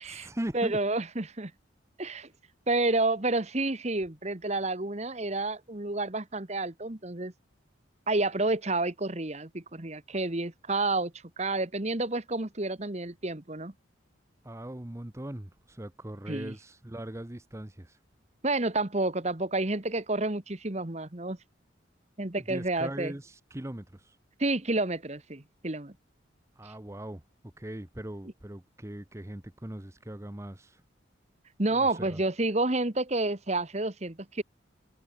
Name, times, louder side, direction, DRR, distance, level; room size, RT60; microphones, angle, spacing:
voice 1, 0.0-0.8 14.4-18.0 22.3-24.2 26.6-27.2 27.6-30.8 31.7-32.2, right 1 dB, 15° right, 0.8 m, -40 dB
voice 2, 0.5-1.5 2.0-2.3 2.7-7.3 8.1-13.7 16.3-16.5 18.4-21.4 22.2-23.1 24.4-25.9 31.6-34.4, right 2 dB, 35° right, 1.4 m, -30 dB
head